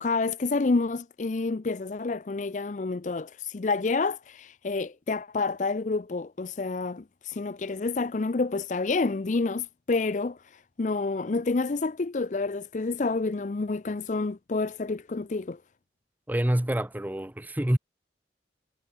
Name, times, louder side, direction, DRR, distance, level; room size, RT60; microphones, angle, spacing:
voice 1, 0.0-15.6, left 3 dB, 45° left, 0.5 m, -29 dB
voice 2, 16.3-17.8, right 1 dB, 10° right, 0.6 m, -26 dB
head